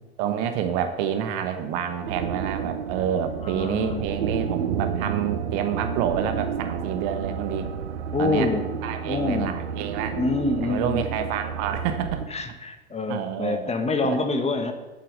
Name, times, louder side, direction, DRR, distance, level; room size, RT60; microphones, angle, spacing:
voice 1, 0.2-7.7 8.2-8.5 8.8-10.2 10.6-12.2 13.1-13.7 14.0-14.2, right 9 dB, 55° right, 8 dB, 1.3 m, -28 dB
sound 1, 2.0-12.3, right 7 dB, 85° right, 0.8 m, -31 dB
voice 2, 3.4-4.0 8.1-8.7 9.1-9.5 10.2-11.3 12.3-14.7, left 3 dB, 20° left, 6 dB, 1.4 m, -26 dB
8.5 x 7.6 x 6.5 m, 1.1 s
figure-of-eight pair, 80°, 33 cm